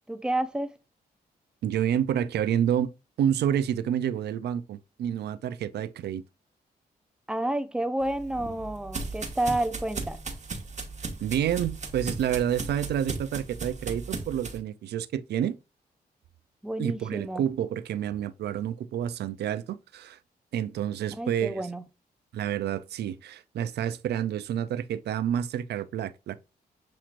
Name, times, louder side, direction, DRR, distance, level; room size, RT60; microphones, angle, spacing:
voice 1, 0.1-0.8 7.3-10.2 16.6-17.4 21.1-21.8, right 1 dB, 5° right, 0.6 m, -30 dB
voice 2, 1.6-2.9 3.2-6.2 11.2-15.6 16.8-20.2 20.5-21.6 22.3-26.4, right 9 dB, 75° right, 0.4 m, -29 dB
sound 1, 8.0-14.6, right 4 dB, 45° right, 1.1 m, -36 dB
7.2 x 3.0 x 2.5 m
cardioid pair, 65°, 17 cm